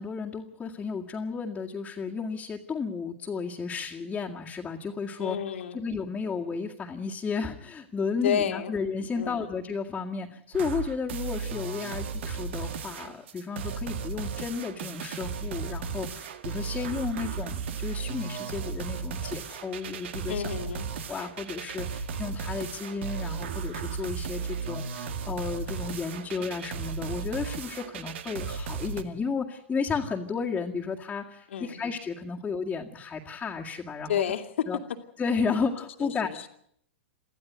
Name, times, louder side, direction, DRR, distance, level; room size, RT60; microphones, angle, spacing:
voice 1, 0.0-5.4 5.7-20.5 21.1-34.3 34.7-34.8 35.2-36.5, left 5 dB, 15° left, -3 dB, 2.1 m, -33 dB
voice 2, 5.2-5.8 8.2-8.7 9.1-9.5 11.9-12.0 20.3-20.9 31.5-31.8 34.1-34.7 36.0-36.3, left 9 dB, 70° left, 6 dB, 2.5 m, -30 dB
sound 1, 10.5-29.0, right 5 dB, 65° right, 1.9 m, -35 dB
24.0 x 15.0 x 9.3 m, 0.71 s
hypercardioid pair, 115°, 7 cm